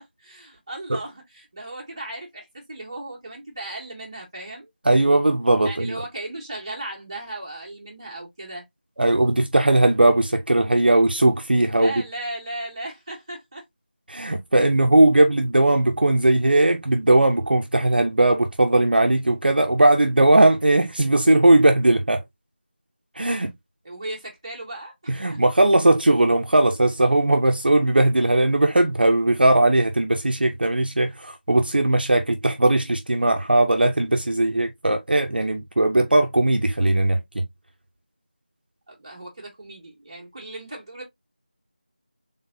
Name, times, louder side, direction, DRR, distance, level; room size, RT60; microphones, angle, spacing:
voice 1, 0.0-4.7 5.6-8.6 11.7-13.6 23.8-25.4 38.9-41.0, right 2 dB, 30° right, 1.7 m, -36 dB
voice 2, 4.8-6.0 9.0-11.9 14.1-22.2 23.2-23.5 25.1-37.5, right 2 dB, 70° right, 0.8 m, -18 dB
3.8 x 3.7 x 2.6 m
figure-of-eight pair, 170°, 5 cm